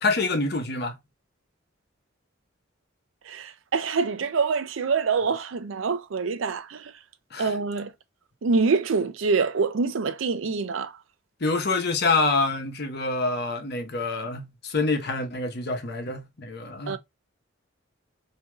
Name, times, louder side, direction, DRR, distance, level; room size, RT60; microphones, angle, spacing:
voice 1, 0.0-1.0 7.3-7.5 11.4-17.0, left 3 dB, 55° left, 1.0 m, -26 dB
voice 2, 3.3-6.9 7.4-7.9 8.4-10.9 16.9-17.0, right 4 dB, 80° right, 0.5 m, -25 dB
4.6 x 2.8 x 2.3 m
head